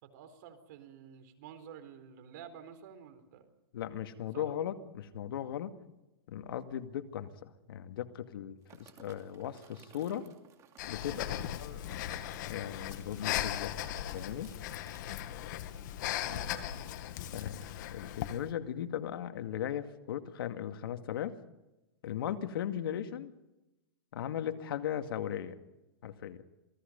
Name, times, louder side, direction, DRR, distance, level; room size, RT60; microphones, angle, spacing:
voice 1, 0.0-3.5 4.3-4.5 11.1-11.4 16.2-16.8, right 8 dB, 50° right, 8 dB, 4.4 m, -50 dB
voice 2, 3.7-5.7 6.3-10.3 10.8-13.7 14.1-14.5 17.3-17.6 17.9-21.4 22.0-23.3 24.1-25.6 26.0-26.4, left 10 dB, 70° left, 7 dB, 2.2 m, -38 dB
sound 1, 8.6-17.7, right 9 dB, 25° right, 2.7 m, -61 dB
Breathing, 10.8-18.5, left 12 dB, 50° left, 1.8 m, -38 dB
27.5 x 19.0 x 5.4 m, 0.98 s
hypercardioid pair, 155°, 13 cm